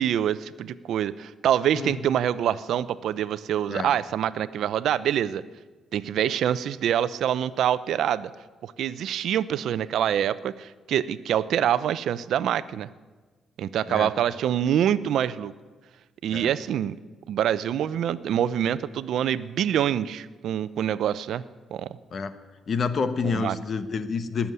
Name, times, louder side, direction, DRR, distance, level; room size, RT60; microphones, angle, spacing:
voice 1, 0.0-5.4 5.9-8.3 8.6-12.9 13.6-15.5 16.2-16.9 17.3-21.4 21.7-22.0 23.2-23.6, right 10 dB, 75° right, 16 dB, 0.6 m, -25 dB
voice 2, 22.7-24.5, left 5 dB, 50° left, 11 dB, 1.1 m, -28 dB
19.0 x 7.1 x 9.5 m, 1.3 s
cardioid pair, 90°, 0 cm